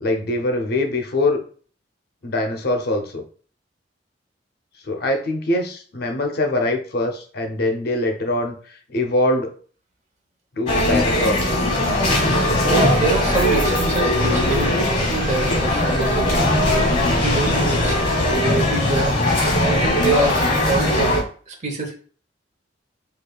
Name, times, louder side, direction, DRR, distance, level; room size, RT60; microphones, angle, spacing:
voice 1, 0.0-1.4 2.2-3.2 4.8-9.5 10.5-11.6, left 2 dB, 55° left, 4 dB, 0.6 m, -23 dB
sound 1, 10.7-21.2, left 1 dB, 40° left, 1.4 m, -19 dB
voice 2, 12.7-21.2 21.5-21.9, right 2 dB, 40° right, 2 dB, 0.8 m, -26 dB
5.1 x 2.4 x 2.2 m, 0.42 s
head